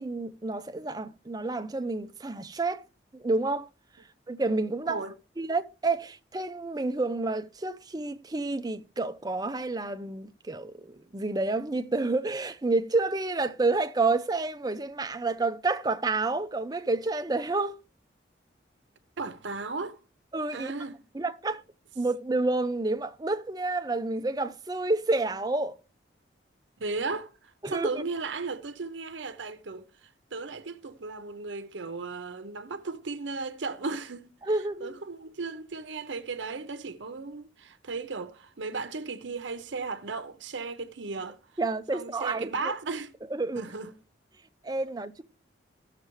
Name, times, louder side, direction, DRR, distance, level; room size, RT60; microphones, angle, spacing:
voice 1, 0.0-2.8 3.1-3.7 4.3-5.0 5.4-17.8 20.3-20.7 21.1-21.6 22.0-25.7 27.6-28.0 34.5-35.0 41.6-42.5 43.3-43.6 44.6-45.2, right 3 dB, 20° right, 0.5 m, -29 dB
voice 2, 19.2-20.0 20.5-21.0 26.8-34.3 34.8-41.4 41.9-43.1 43.5-43.9, right 4 dB, 85° right, 0.8 m, -36 dB
17.0 x 6.6 x 3.1 m
head